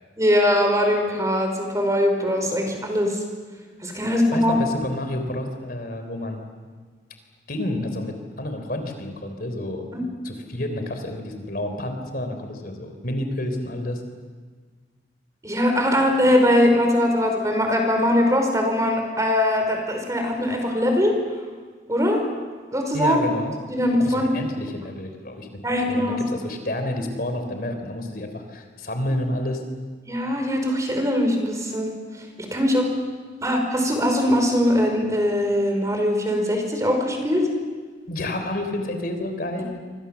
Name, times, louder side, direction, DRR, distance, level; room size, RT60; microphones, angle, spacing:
voice 1, 0.2-3.2 3.8-4.5 9.9-10.0 15.4-21.1 21.9-22.2 22.7-23.2 23.7-24.3 25.6-26.2 30.1-31.9 32.4-32.8 33.4-37.5, left 1 dB, 20° right, 3 dB, 5.1 m, -21 dB
voice 2, 4.1-6.4 7.5-9.8 10.2-14.0 22.9-23.5 24.0-29.6 38.1-39.8, left 1 dB, 55° left, 6 dB, 3.8 m, -29 dB
27.5 x 25.0 x 7.2 m, 1.5 s
head